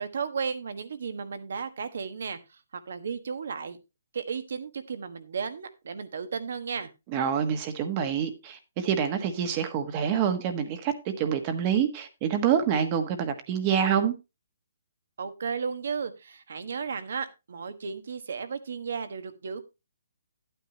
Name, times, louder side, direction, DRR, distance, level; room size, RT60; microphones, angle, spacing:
voice 1, 0.0-2.6 2.9-3.8 4.1-6.9 15.2-19.6, right 6 dB, 65° right, 1.3 m, -34 dB
voice 2, 7.1-14.1, right 8 dB, 30° right, 1.3 m, -27 dB
10.5 x 9.1 x 2.9 m
hypercardioid pair, 150°, 0 cm